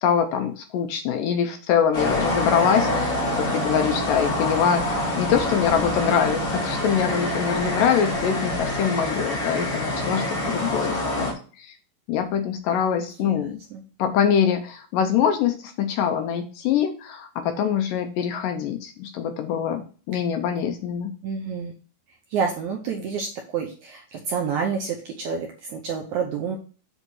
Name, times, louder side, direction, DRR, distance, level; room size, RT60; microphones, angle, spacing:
voice 1, 0.0-11.3 11.6-11.7 12.1-13.6 14.0-21.1, left 8 dB, 80° left, 6 dB, 2.1 m, -24 dB
sound 1, 1.9-11.3, left 1 dB, 40° left, 3.3 m, -26 dB
voice 2, 13.2-13.8 20.1-20.2 21.2-21.7 22.3-26.6, right 6 dB, 75° right, 2 dB, 1.8 m, -29 dB
8.0 x 3.6 x 6.2 m, 0.38 s
omnidirectional pair, 4.4 m